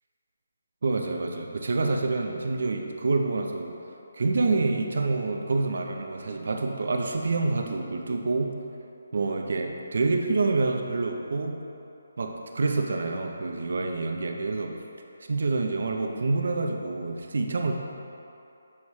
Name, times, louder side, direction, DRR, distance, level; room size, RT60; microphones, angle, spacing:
voice 1, 0.8-3.8 4.1-8.5 9.1-11.6 12.2-14.7 15.3-17.7, right 3 dB, 60° right, 3 dB, 0.6 m, -27 dB
7.1 x 3.1 x 4.8 m, 2.8 s
hypercardioid pair, 170°, 0 cm